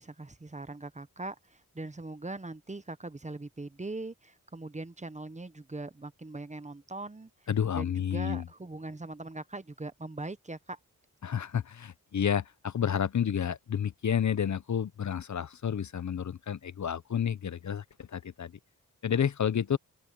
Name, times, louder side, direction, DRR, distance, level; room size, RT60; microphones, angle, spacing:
voice 1, 0.0-7.3 7.8-10.8, right 2 dB, 20° right, 1.0 m, -41 dB
voice 2, 7.5-8.4 11.2-18.5 19.0-19.8, left 8 dB, 55° left, 0.7 m, -30 dB
open air
wide cardioid pair, 80°, 34 cm